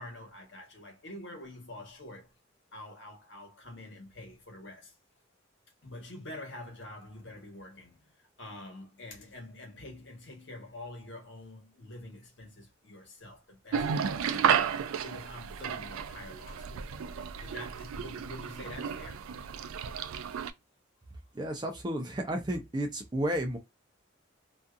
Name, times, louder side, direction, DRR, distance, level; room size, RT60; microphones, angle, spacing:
voice 1, 0.0-2.4 2.7-5.0 5.8-14.5 15.0-19.9 20.3-20.6, left 1 dB, 60° left, 1.2 m, -47 dB
sound 1, 13.7-20.5, right 7 dB, 90° right, 0.3 m, -32 dB
voice 2, 21.3-23.6, right 1 dB, 20° right, 0.5 m, -32 dB
2.6 x 2.4 x 2.3 m
head